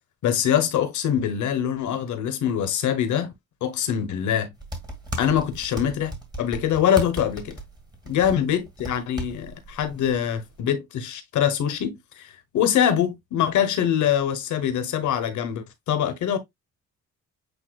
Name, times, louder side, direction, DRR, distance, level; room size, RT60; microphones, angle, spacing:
voice 1, 0.2-3.3 3.6-4.5 5.2-7.6 8.1-16.4, left 9 dB, 75° left, 1.2 m, -24 dB
sound 1, 4.5-10.6, right 1 dB, 15° right, 1.9 m, -37 dB
8.1 x 2.8 x 2.3 m
cardioid pair, 90°, 30 cm